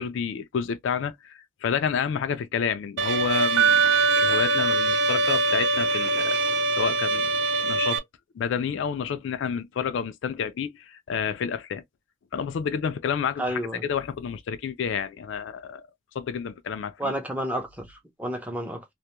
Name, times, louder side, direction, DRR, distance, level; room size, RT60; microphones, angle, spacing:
voice 1, 0.0-8.0 8.3-11.8 12.3-15.8 16.1-17.1, left 7 dB, 65° left, 0.3 m, -30 dB
Bowed string instrument, 3.0-8.0, right 2 dB, 55° right, 0.3 m, -24 dB
Piano, 3.6-5.7, right 12 dB, 80° right, 1.0 m, -25 dB
voice 2, 13.4-13.8 17.0-18.8, right 1 dB, 5° right, 0.6 m, -31 dB
2.3 x 2.1 x 2.8 m
head